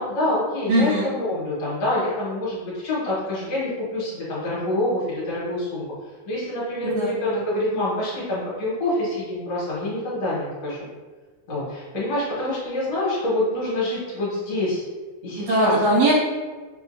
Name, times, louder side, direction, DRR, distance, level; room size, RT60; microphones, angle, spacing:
voice 1, 0.0-5.8 6.3-10.9 11.5-14.8 15.2-15.8, left 1 dB, 65° left, -7 dB, 2.1 m, -26 dB
voice 2, 0.7-1.1 6.8-7.1 15.4-16.2, right 1 dB, 85° right, -7 dB, 3.1 m, -20 dB
6.3 x 2.5 x 2.5 m, 1.4 s
omnidirectional pair, 3.6 m